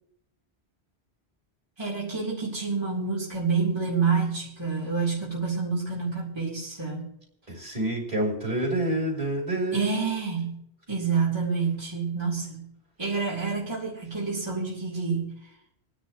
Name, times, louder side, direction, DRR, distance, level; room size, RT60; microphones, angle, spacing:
voice 1, 1.8-7.1 9.7-10.6 10.9-12.7 13.0-15.4, right 5 dB, 25° right, -5 dB, 2.2 m, -28 dB
voice 2, 7.5-10.1, right 1 dB, 40° right, -2 dB, 2.8 m, -28 dB
27.5 x 10.0 x 2.5 m, 0.75 s
omnidirectional pair, 1.1 m